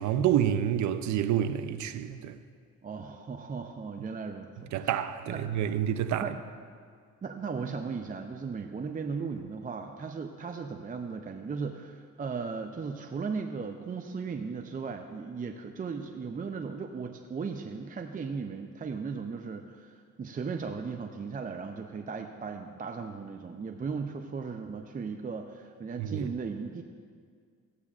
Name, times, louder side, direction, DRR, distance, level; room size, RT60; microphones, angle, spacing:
voice 1, 0.0-2.4 4.7-6.3 26.0-26.3, right 10 dB, 70° right, 0.6 m, -28 dB
voice 2, 2.8-4.9 5.3-5.8 6.2-6.4 7.2-26.8, right 5 dB, 30° right, 0.5 m, -37 dB
15.0 x 8.3 x 2.4 m
cardioid pair, 90°, 30 cm